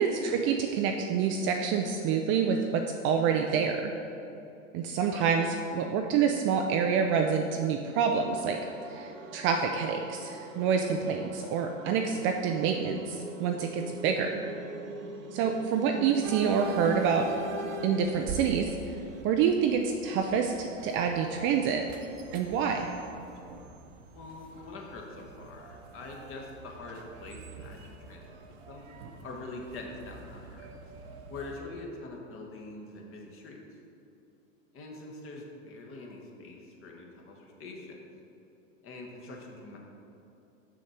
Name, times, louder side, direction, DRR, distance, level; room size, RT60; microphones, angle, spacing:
voice 1, 0.0-3.8 4.7-5.5 5.7-8.6 8.9-14.3 15.3-17.3 17.8-18.7 19.2-21.9 22.3-22.9, right 6 dB, 30° right, 4 dB, 0.4 m, -27 dB
sound 1, 8.2-19.2, right 3 dB, 85° right, 0.9 m, -44 dB
sound 2, 16.2-31.6, right 3 dB, 50° right, 0.9 m, -43 dB
voice 2, 24.1-28.4 28.7-28.8 29.2-30.8 31.3-33.6 34.7-38.1 38.8-39.8, left 2 dB, 35° left, 0 dB, 1.3 m, -44 dB
6.4 x 6.3 x 4.4 m, 2.8 s
hypercardioid pair, 105°, 39 cm